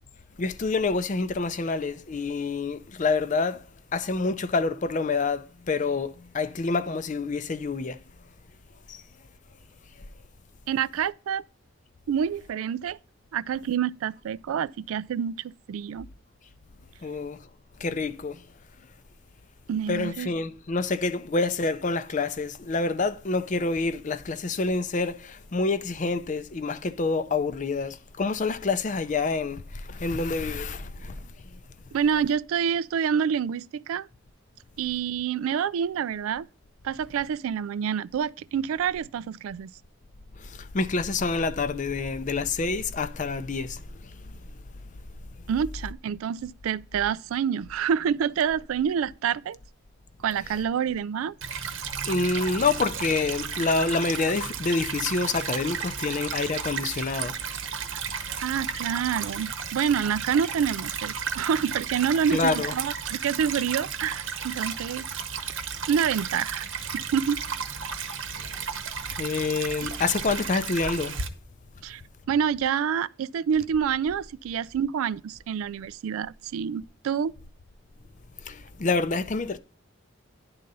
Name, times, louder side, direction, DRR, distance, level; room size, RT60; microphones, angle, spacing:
voice 1, 0.4-3.7 3.9-8.0 8.9-9.0 17.0-17.4 17.8-18.4 19.9-31.2 40.4-44.1 52.1-57.4 62.3-62.7 69.2-71.2 78.4-79.6, left 3 dB, 40° left, 0.5 m, -27 dB
voice 2, 10.7-11.4 12.1-13.0 13.3-16.1 19.7-20.3 31.9-34.1 34.8-36.5 36.8-39.7 45.5-49.6 50.2-51.3 57.9-58.0 58.4-65.0 65.9-66.7 66.9-67.4 69.8-69.9 71.8-72.0 72.3-77.3, right 7 dB, 85° right, 0.3 m, -27 dB
Stream / Trickle dribble, 51.4-71.3, right 6 dB, 65° right, 0.9 m, -33 dB
10.5 x 3.9 x 5.4 m
head